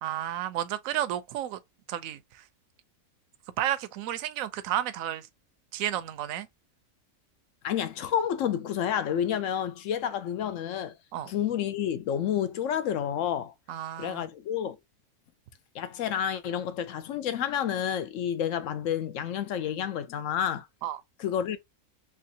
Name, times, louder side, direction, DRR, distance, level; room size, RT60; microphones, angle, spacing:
voice 1, 0.0-1.6 1.9-2.4 3.6-5.3 5.7-6.5 11.1-11.3 13.7-14.2 20.8-21.0, right 12 dB, 70° right, 0.9 m, -32 dB
voice 2, 7.6-11.0 11.3-13.5 14.0-14.8 15.7-20.7 21.2-21.6, left 9 dB, 70° left, 0.8 m, -29 dB
3.5 x 3.1 x 2.7 m
omnidirectional pair, 1.6 m